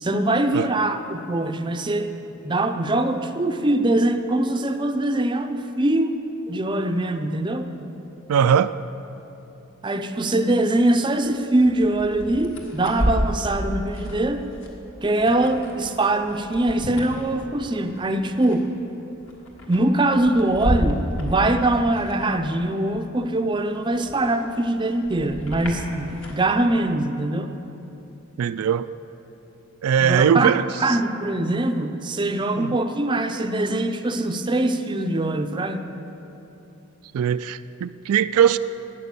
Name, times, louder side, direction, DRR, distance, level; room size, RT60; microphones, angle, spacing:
voice 1, 0.0-2.1 2.4-6.2 6.5-7.7 9.8-14.4 15.0-18.7 19.7-27.5 30.0-30.5 30.8-35.8, right 1 dB, 20° right, 0.5 m, -22 dB
voice 2, 8.3-8.7 28.4-28.9 29.8-30.6 32.6-32.7 37.1-38.6, right 8 dB, 85° right, 0.3 m, -20 dB
sound 1, 10.3-10.4 10.8-22.6 22.9-26.4, equal, 60° left, 1.7 m, -31 dB
12.5 x 8.9 x 6.8 m
head